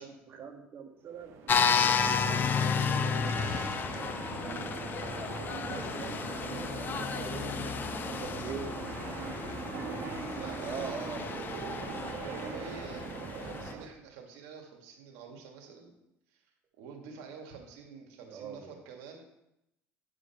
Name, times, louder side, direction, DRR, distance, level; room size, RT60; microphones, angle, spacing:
voice 1, 0.0-1.3 8.1-8.7 10.6-12.0 18.3-18.7, right 6 dB, 50° right, 3 dB, 1.7 m, -42 dB
sound 1, 1.1-13.9, right 6 dB, 65° right, 1.3 m, -41 dB
sound 2, 1.5-13.7, left 6 dB, 40° left, 0.6 m, -32 dB
voice 2, 1.8-3.7 5.1-6.3 6.9-8.5 10.3-10.9 12.2-13.1 13.4-16.0 16.3-16.5 16.8-19.3, right 5 dB, 85° right, 2 dB, 1.9 m, -47 dB
9.3 x 5.1 x 5.8 m, 0.84 s
supercardioid pair, 95°, 5 cm